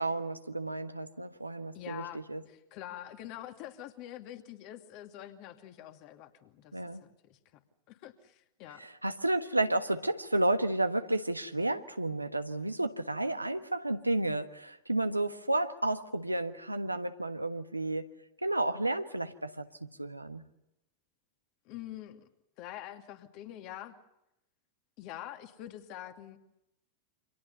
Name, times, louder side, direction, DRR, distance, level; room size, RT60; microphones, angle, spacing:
voice 1, 0.0-2.4 6.7-7.0 8.8-18.1 18.4-19.7 20.0-20.4, right 2 dB, 85° right, 9 dB, 1.4 m, -31 dB
voice 2, 1.7-7.4 7.9-8.9 21.6-22.3 22.6-23.9 25.0-26.4, left 12 dB, 45° left, 7 dB, 2.5 m, -45 dB
29.0 x 26.0 x 5.5 m, 0.87 s
figure-of-eight pair, 90°, 0 cm